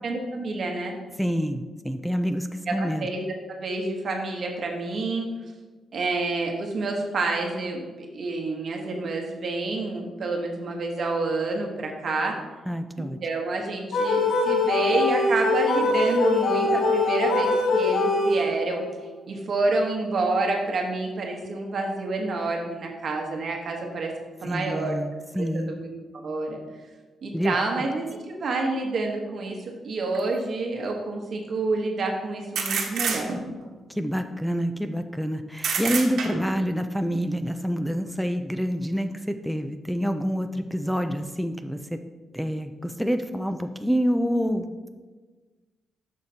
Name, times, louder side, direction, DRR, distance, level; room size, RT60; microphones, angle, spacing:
voice 1, 0.0-1.0 2.7-3.2 3.5-5.3 5.9-7.8 8.1-12.4 13.0-18.8 19.3-24.1 24.4-24.9 25.4-26.6 27.2-33.3, right 3 dB, 45° right, 1 dB, 1.0 m, -28 dB
voice 2, 1.2-3.1 12.7-13.2 24.4-25.7 27.3-27.9 33.9-42.0 42.3-44.7, equal, ahead, 6 dB, 0.3 m, -27 dB
sound 1, 13.9-18.8, left 2 dB, 85° left, 1.3 m, -22 dB
sound 2, 30.1-30.2 32.5-33.6 35.6-36.6, right 5 dB, 65° right, 1.1 m, -28 dB
11.5 x 6.5 x 2.8 m, 1.3 s
wide cardioid pair, 175°, 0 cm